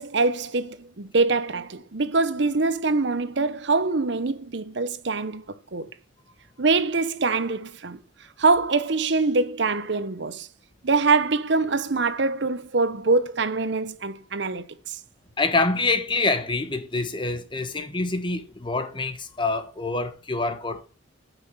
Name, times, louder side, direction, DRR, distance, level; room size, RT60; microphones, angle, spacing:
voice 1, 0.0-5.8 6.6-8.0 8.4-10.5 10.8-15.0, right 3 dB, 60° right, 0.8 m, -24 dB
voice 2, 15.4-20.9, left 3 dB, 25° left, 1.2 m, -26 dB
9.1 x 6.1 x 7.0 m
head